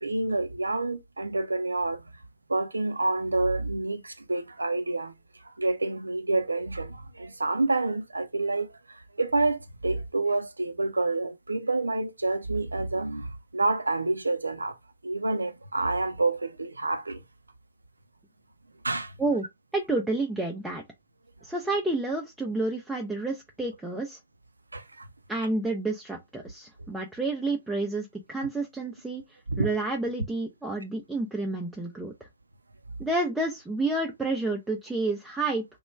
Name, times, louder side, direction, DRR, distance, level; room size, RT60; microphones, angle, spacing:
voice 1, 0.0-2.0 2.5-5.1 5.4-14.8 15.0-17.2 18.8-19.1 24.7-25.1 29.5-29.7, right 2 dB, 85° right, 0.4 m, -28 dB
voice 2, 19.7-20.8 21.4-24.2 25.3-32.1 33.0-35.6, right 2 dB, 5° right, 0.5 m, -30 dB
3.0 x 2.2 x 3.1 m
figure-of-eight pair, 120°, 0 cm